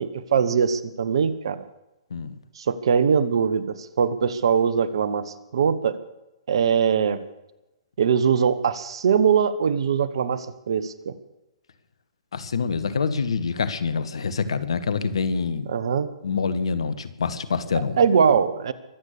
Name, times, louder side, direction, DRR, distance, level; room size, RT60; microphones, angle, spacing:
voice 1, 0.0-1.6 2.6-6.0 6.5-7.2 8.0-11.1 15.7-16.1 18.0-18.7, right 7 dB, 65° right, 15 dB, 1.3 m, -22 dB
voice 2, 12.3-15.7 16.2-18.0, left 5 dB, 70° left, 13 dB, 1.4 m, -26 dB
23.0 x 8.6 x 6.8 m, 0.94 s
figure-of-eight pair, 120°, 3 cm